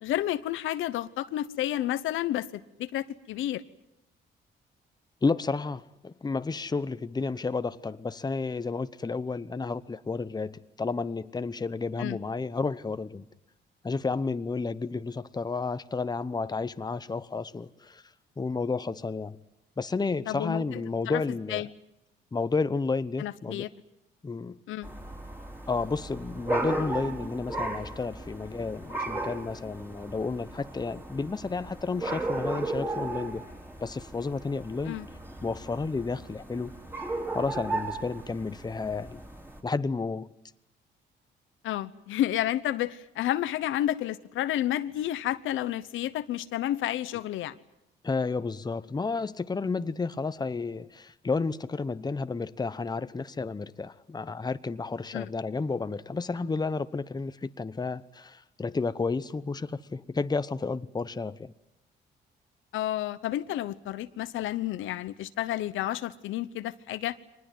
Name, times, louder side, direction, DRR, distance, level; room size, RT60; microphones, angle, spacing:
voice 1, 0.0-3.6 12.0-12.2 20.3-20.8 21.1-21.2 21.5-21.7 23.2-23.7 24.7-24.9 34.9-35.1 41.6-47.5 55.1-55.3 62.7-67.2, left 13 dB, 85° left, 1.0 m, -31 dB
voice 2, 5.2-13.3 13.8-18.0 18.4-19.4 19.8-21.7 22.3-23.7 24.2-24.6 25.7-33.5 33.8-35.0 35.4-36.7 37.3-39.2 39.6-40.3 48.0-61.5, left 4 dB, 20° left, 0.9 m, -31 dB
sound 1, 24.8-39.6, right 2 dB, 10° right, 4.3 m, -36 dB
24.0 x 20.0 x 9.3 m
cardioid pair, 90°, 20 cm